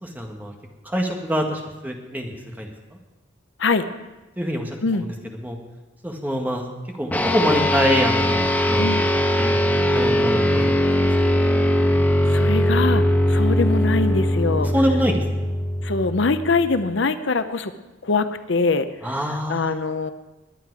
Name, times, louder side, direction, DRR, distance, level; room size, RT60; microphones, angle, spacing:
voice 1, 0.0-0.5 0.8-2.7 4.4-5.1 5.4-5.6 6.0-6.7 7.0-8.8 9.4-9.7 9.9-11.0 14.6-15.5 19.0-19.7, equal, 10° right, 1 dB, 1.7 m, -25 dB
sound 1, 7.1-16.8, left 1 dB, 10° left, 1.0 m, -20 dB
voice 2, 11.8-14.7 15.8-17.7 18.0-20.1, left 3 dB, 75° left, 11 dB, 0.7 m, -23 dB
21.0 x 9.2 x 4.8 m, 1.1 s
head